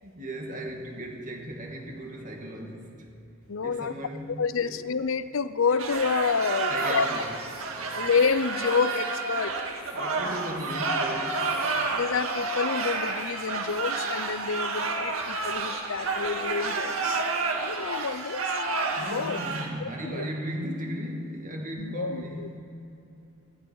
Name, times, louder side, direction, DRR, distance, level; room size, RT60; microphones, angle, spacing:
voice 1, 0.0-3.1 3.6-4.8 6.7-7.3 7.8-8.0 9.4-9.5 9.9-11.8 19.0-22.6, right 1 dB, 40° right, 1 dB, 2.3 m, -36 dB
voice 2, 3.5-3.9 4.4-7.1 7.9-9.5 11.9-17.2 17.6-18.5 19.0-19.4 19.8-20.2 21.8-22.6, left 5 dB, 70° left, 15 dB, 0.5 m, -28 dB
sound 1, 5.8-19.7, right 3 dB, 80° right, 1.8 m, -30 dB
17.5 x 14.0 x 4.7 m, 2.9 s
head